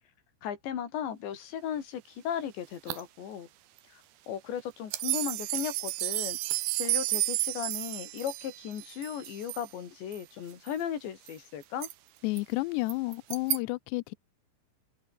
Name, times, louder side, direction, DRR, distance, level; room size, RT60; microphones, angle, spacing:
voice 1, 0.4-3.5 3.9-6.4 6.8-11.9, left 9 dB, 65° left, 5.2 m, -36 dB
sound 1, 1.2-13.6, right 14 dB, 65° right, 2.9 m, -45 dB
sound 2, 4.9-9.7 10.1-10.2 10.7-10.8 11.3-11.4, right 21 dB, 85° right, 2.7 m, -32 dB
voice 2, 12.2-14.1, left 22 dB, 90° left, 2.4 m, -31 dB
omnidirectional pair, 5.6 m